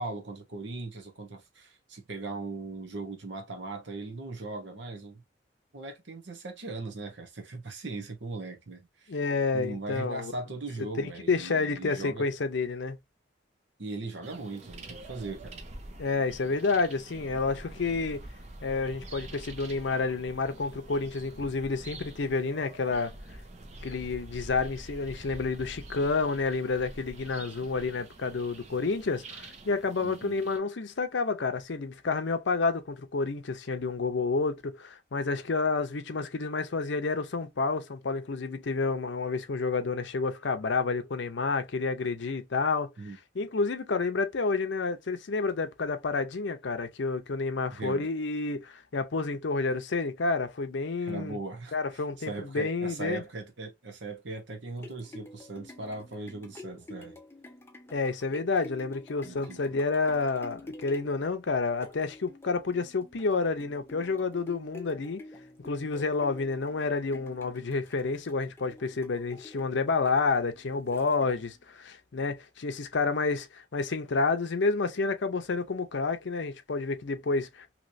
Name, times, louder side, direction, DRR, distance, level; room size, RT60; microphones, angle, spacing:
voice 1, 0.0-5.2 5.7-9.2 9.5-12.3 13.8-15.6 30.0-30.3 43.0-43.2 47.7-48.1 51.0-57.2 59.2-59.6, right 3 dB, 70° right, 0.9 m, -39 dB
voice 2, 9.1-10.3 11.0-13.0 16.0-18.2 18.6-23.1 23.8-42.9 43.3-51.4 51.7-53.2 57.9-65.2 65.6-77.7, left 4 dB, 65° left, 0.6 m, -29 dB
sound 1, 14.2-30.6, right 2 dB, 35° right, 0.5 m, -46 dB
sound 2, 54.5-71.6 72.2-72.3, left 2 dB, 10° left, 0.5 m, -49 dB
3.0 x 2.9 x 2.6 m
head